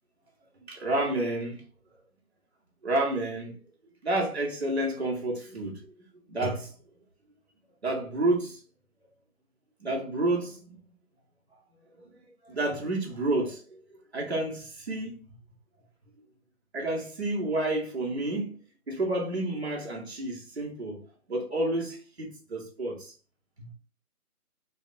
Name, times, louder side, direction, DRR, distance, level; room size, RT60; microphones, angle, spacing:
voice 1, 0.7-1.6 2.8-3.6 4.0-5.9 6.3-6.7 7.8-8.6 9.8-10.8 12.0-12.2 12.4-15.2 16.7-18.5 18.9-21.0 21.3-23.1 23.6-23.7, right 2 dB, 45° right, 0.7 m, -30 dB
2.8 x 2.0 x 2.5 m
figure-of-eight pair, 170°, 45 cm